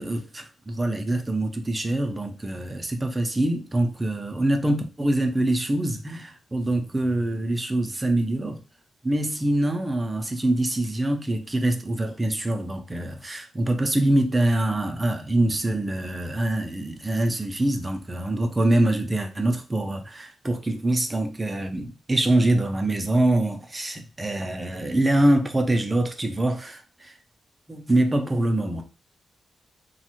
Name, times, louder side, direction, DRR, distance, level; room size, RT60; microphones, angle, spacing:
voice 1, 0.0-8.6 9.0-27.2 27.7-28.8, right 1 dB, 15° right, 0.3 m, -24 dB
3.1 x 2.1 x 2.9 m
wide cardioid pair, 165°, 0 cm